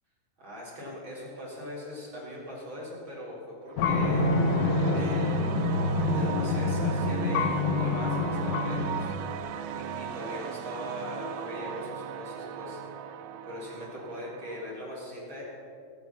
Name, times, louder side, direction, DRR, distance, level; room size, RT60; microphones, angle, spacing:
voice 1, 0.4-4.3 4.9-5.6 6.0-9.1 9.7-12.8 13.5-15.4, left 1 dB, 35° right, -5 dB, 4.4 m, -40 dB
sound 1, 3.7-14.7, right 9 dB, 85° right, 1.5 m, -38 dB
sound 2, 3.8-9.2, left 2 dB, 70° left, 2.2 m, -26 dB
19.5 x 9.0 x 5.9 m, 2.5 s
omnidirectional pair, 4.0 m